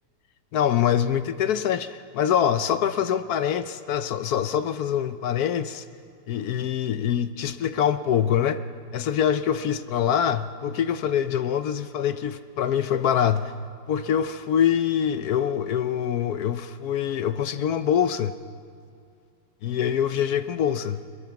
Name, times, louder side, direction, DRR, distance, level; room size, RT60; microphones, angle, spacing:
voice 1, 0.5-5.8 6.3-8.6 8.9-13.5 13.9-18.3 19.6-21.0, left 9 dB, 65° left, 12 dB, 0.9 m, -24 dB
22.0 x 21.0 x 5.9 m, 2.4 s
omnidirectional pair, 2.2 m